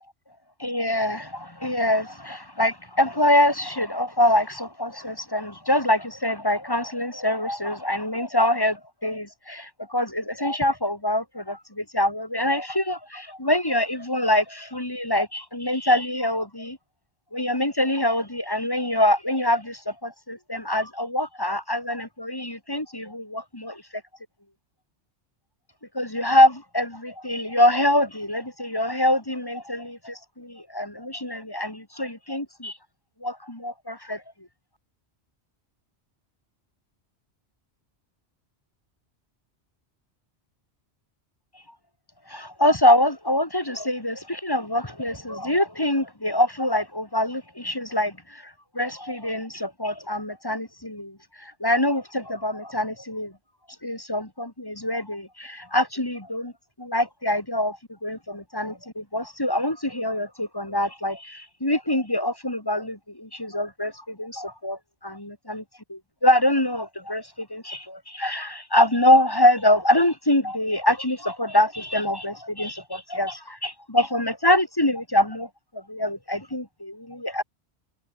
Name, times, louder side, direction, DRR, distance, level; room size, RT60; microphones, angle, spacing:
voice 1, 0.6-16.8 17.3-23.8 25.9-32.8 33.2-34.2 42.3-53.3 53.8-56.5 56.8-65.6 65.9-77.4, left 1 dB, 20° left, 3.0 m, -24 dB
omnidirectional pair, 1.1 m